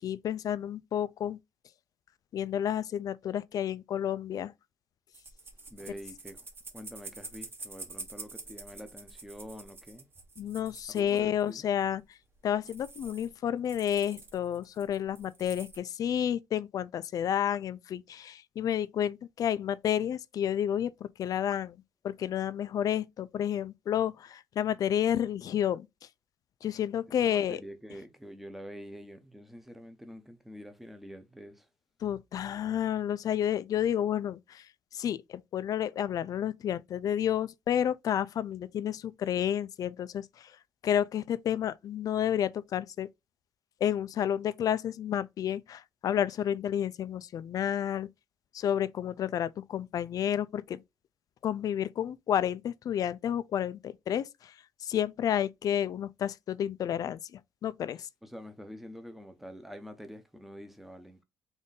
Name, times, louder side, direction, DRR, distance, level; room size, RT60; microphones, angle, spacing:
voice 1, 0.0-1.4 2.3-4.5 10.4-12.0 12.4-20.9 21.2-25.9 26.6-27.6 32.0-34.7 34.9-40.5 40.8-43.1 43.8-48.1 48.5-50.8 51.4-54.5 54.8-58.1, left 10 dB, 50° left, 0.4 m, -30 dB
sound 1, 5.1-11.5 12.0-12.1 12.3-12.4 12.6-13.4 13.6-15.8, right 3 dB, 30° right, 1.1 m, -47 dB
voice 2, 5.7-6.4 6.7-10.1 10.9-11.7 27.2-31.6 58.2-61.2, equal, 5° right, 0.7 m, -46 dB
3.7 x 2.6 x 3.8 m
cardioid pair, 105°, 8 cm